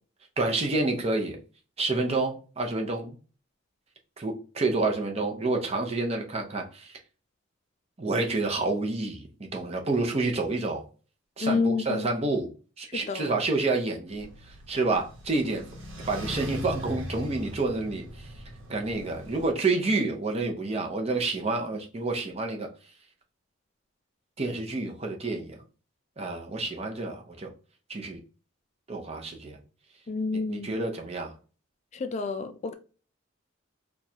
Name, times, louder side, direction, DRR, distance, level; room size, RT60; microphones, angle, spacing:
voice 1, 0.4-1.4 1.8-3.2 4.2-6.9 8.0-10.8 11.4-12.5 12.8-14.3 14.7-15.6 16.0-18.3 18.7-22.7 24.4-25.6 26.2-27.5 27.9-28.2 28.9-29.6 30.5-31.3, right 3 dB, 30° right, 0.6 m, -29 dB
voice 2, 11.4-12.1 12.9-13.3 30.1-30.8 31.9-32.7, left 4 dB, 35° left, 0.3 m, -29 dB
sound 1, 14.1-19.5, equal, 75° right, 1.0 m, -40 dB
4.5 x 2.3 x 2.7 m
head